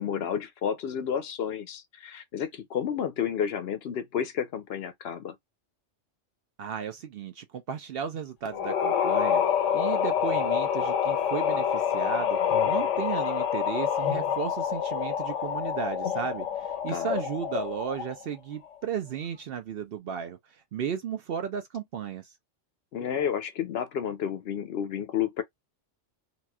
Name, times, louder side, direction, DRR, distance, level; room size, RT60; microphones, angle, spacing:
voice 1, 0.0-5.4 16.9-17.2 22.9-25.4, left 8 dB, 65° left, 0.7 m, -31 dB
voice 2, 6.6-9.4 9.7-12.4 12.7-22.3, right 7 dB, 65° right, 0.7 m, -34 dB
sound 1, 8.5-18.3, left 8 dB, 85° left, 1.0 m, -27 dB
3.0 x 2.9 x 2.2 m
omnidirectional pair, 1.3 m